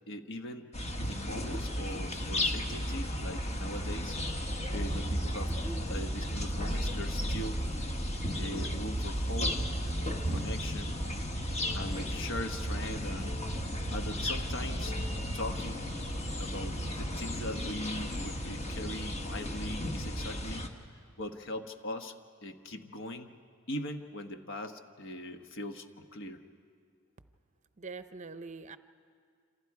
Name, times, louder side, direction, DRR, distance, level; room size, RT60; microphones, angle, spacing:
voice 1, 0.1-0.7 1.1-4.2 4.7-5.5 5.9-7.8 8.3-9.6 10.3-11.0 11.7-13.3 13.9-15.0 15.3-15.9 16.4-20.7 21.2-22.1 22.4-23.3 23.7-26.4, left 1 dB, 60° left, 6 dB, 1.2 m, -40 dB
sound 1, 0.7-20.7, equal, 30° left, 1.3 m, -34 dB
voice 2, 27.8-28.8, right 4 dB, 35° right, 12 dB, 0.6 m, -43 dB
27.5 x 27.0 x 4.8 m, 2.2 s
head